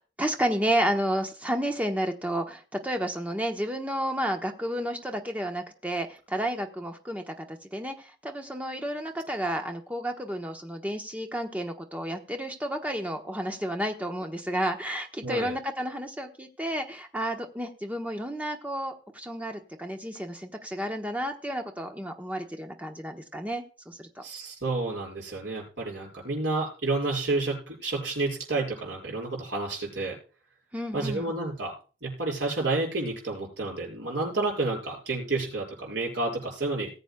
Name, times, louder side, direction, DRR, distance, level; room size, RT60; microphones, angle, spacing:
voice 1, 0.0-24.2 30.7-31.3, equal, 10° right, 3 dB, 1.1 m, -31 dB
voice 2, 15.2-15.5 24.2-30.1 30.9-31.7 32.0-36.9, right 2 dB, 60° right, -2 dB, 6.0 m, -30 dB
19.5 x 8.0 x 2.3 m, 0.36 s
head